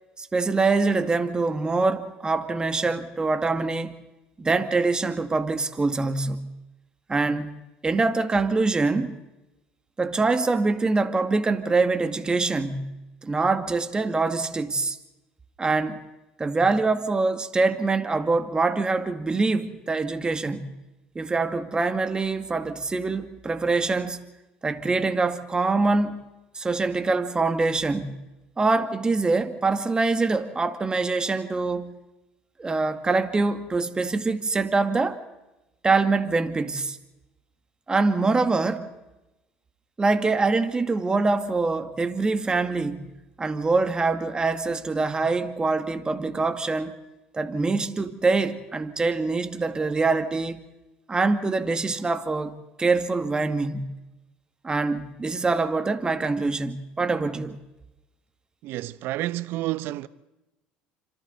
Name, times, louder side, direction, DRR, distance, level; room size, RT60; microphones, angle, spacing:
voice 1, 0.2-4.0 4.4-6.5 7.1-7.6 7.8-9.2 10.0-15.0 15.6-16.0 16.4-20.7 21.2-24.2 24.6-26.3 26.6-28.2 28.6-31.9 32.6-35.2 35.8-37.0 37.9-38.9 40.0-43.1 43.4-47.0 47.3-50.6 51.1-52.5 52.8-53.9 54.6-57.6, right 3 dB, 20° right, 2.1 m, -24 dB
voice 2, 58.6-60.1, right 16 dB, 65° right, 0.9 m, -30 dB
28.0 x 26.0 x 4.1 m
supercardioid pair, 90°, 4 cm